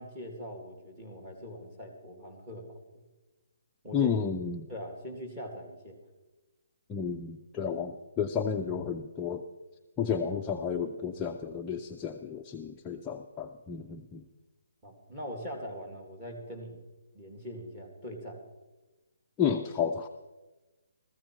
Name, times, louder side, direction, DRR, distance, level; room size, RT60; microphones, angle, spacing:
voice 1, 0.0-2.8 3.8-4.2 4.7-6.0 14.8-16.8 17.1-18.4, equal, 10° right, 2 dB, 2.2 m, -42 dB
voice 2, 3.9-4.7 6.9-9.4 10.0-14.2 19.4-20.1, left 7 dB, 10° left, 2 dB, 0.5 m, -32 dB
15.0 x 14.5 x 4.5 m, 1.2 s
hypercardioid pair, 170°, 0 cm